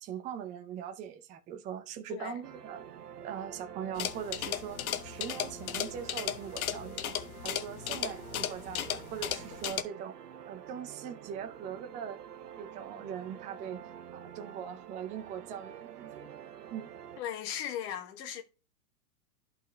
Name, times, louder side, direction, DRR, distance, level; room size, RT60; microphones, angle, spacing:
voice 1, 0.0-2.9 3.2-7.2 7.4-10.2 10.5-12.2 12.6-13.8 14.1-16.3 16.7-16.9, right 8 dB, 15° right, 0.5 m, -41 dB
sound 1, 2.4-17.2, right 9 dB, 90° right, 0.9 m, -48 dB
sound 2, 4.0-9.8, left 11 dB, 65° left, 0.9 m, -36 dB
voice 2, 17.2-18.4, left 10 dB, 40° left, 1.2 m, -37 dB
11.5 x 4.1 x 3.1 m
hypercardioid pair, 130°, 46 cm